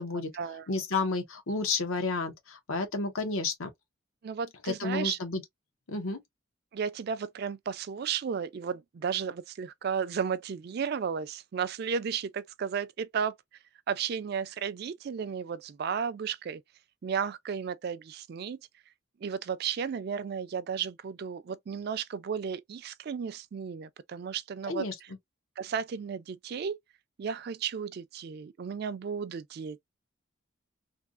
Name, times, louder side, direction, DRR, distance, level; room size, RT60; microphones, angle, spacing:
voice 1, 0.1-0.6 4.2-5.2 6.7-13.4 13.9-16.6 17.0-18.6 19.2-24.9 25.6-26.8 27.2-29.8, right 7 dB, 50° right, 0.3 m, -34 dB
voice 2, 0.7-3.7 4.7-5.4 5.9-6.2 24.7-24.9, left 3 dB, 85° left, 1.1 m, -31 dB
3.3 x 2.4 x 2.4 m
head